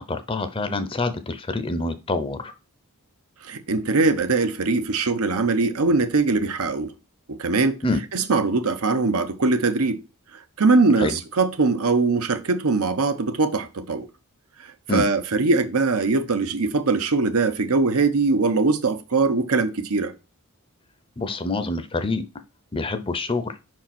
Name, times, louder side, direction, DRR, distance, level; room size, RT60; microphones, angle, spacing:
voice 1, 0.0-2.5 7.8-8.0 11.0-11.2 14.9-15.0 21.2-22.2 22.7-23.6, left 2 dB, 25° left, 0.6 m, -26 dB
voice 2, 3.4-6.9 7.3-7.8 8.1-10.0 10.6-14.1 14.9-20.1, right 3 dB, 80° right, 0.8 m, -21 dB
5.3 x 4.6 x 5.9 m
head